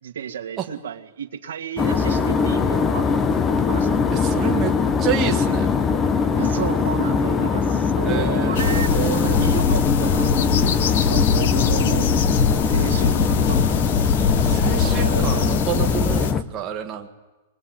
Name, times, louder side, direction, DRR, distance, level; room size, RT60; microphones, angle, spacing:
voice 1, 0.0-3.3 3.7-4.4 6.3-12.1 12.6-13.8 14.8-15.6, right 8 dB, 80° right, 4 dB, 2.1 m, -32 dB
sound 1, 1.8-16.4, left 5 dB, 15° left, 0.9 m, -21 dB
voice 2, 4.1-5.8 8.0-9.5 14.4-17.1, right 9 dB, 20° right, 1 dB, 1.7 m, -28 dB
sound 2, 8.5-16.3, left 6 dB, 55° left, 1.2 m, -23 dB
25.5 x 21.5 x 9.3 m, 1.2 s
hypercardioid pair, 170°, 0 cm